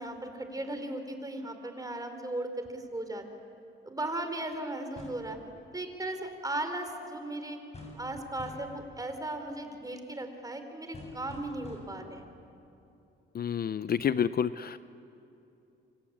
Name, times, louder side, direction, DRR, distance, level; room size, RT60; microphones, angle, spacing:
voice 1, 0.0-3.2 3.8-5.4 5.7-7.6 7.9-12.3, right 1 dB, 20° right, 6 dB, 4.0 m, -37 dB
sound 1, 5.0-5.3 7.7-8.1 8.4-8.8 10.9-12.1, left 1 dB, 30° left, 7.8 m, -47 dB
voice 2, 13.3-14.8, left 8 dB, 50° left, 14 dB, 0.6 m, -29 dB
27.0 x 25.0 x 8.7 m, 2.8 s
cardioid pair, 90°, 20 cm